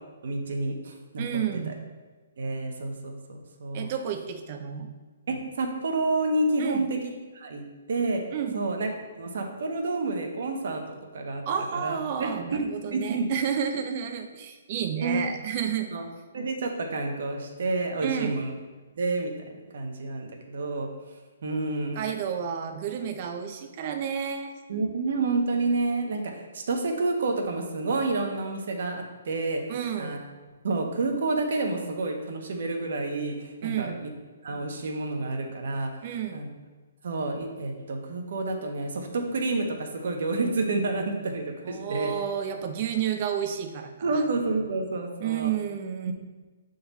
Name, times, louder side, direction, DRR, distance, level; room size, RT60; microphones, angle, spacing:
voice 1, 0.2-1.7 2.4-3.9 5.3-7.0 7.3-8.2 8.5-8.9 9.2-10.8 11.1-11.4 11.7-12.6 12.9-13.2 15.0-15.2 15.9-16.0 16.3-18.5 19.0-19.3 19.7-20.9 21.4-22.0 24.7-29.6 30.0-30.2 30.6-34.1 34.4-36.0 36.3-36.5 37.0-42.1 44.0-45.5 46.1-46.2, right 3 dB, 65° right, 3 dB, 1.1 m, -29 dB
voice 2, 1.2-1.7 3.7-4.9 6.6-6.9 8.3-8.6 11.5-15.9 18.0-18.4 22.0-24.5 29.7-30.2 33.6-34.0 36.0-36.4 41.6-44.2 45.2-46.1, right 8 dB, 35° right, 6 dB, 0.7 m, -31 dB
7.5 x 3.9 x 4.1 m, 1.3 s
hypercardioid pair, 160°, 0 cm